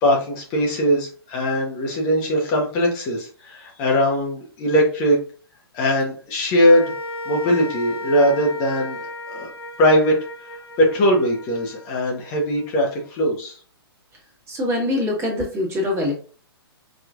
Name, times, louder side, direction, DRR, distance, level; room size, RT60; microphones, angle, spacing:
voice 1, 0.0-5.2 5.7-6.9 7.3-9.5 9.8-10.1 10.8-13.5, equal, 30° left, 0 dB, 1.2 m, -20 dB
sound 1, 6.6-13.0, left 1 dB, 85° left, 0.8 m, -35 dB
voice 2, 14.5-16.1, left 2 dB, 20° right, -1 dB, 1.8 m, -23 dB
5.0 x 3.1 x 2.5 m, 0.41 s
figure-of-eight pair, 120°, 13 cm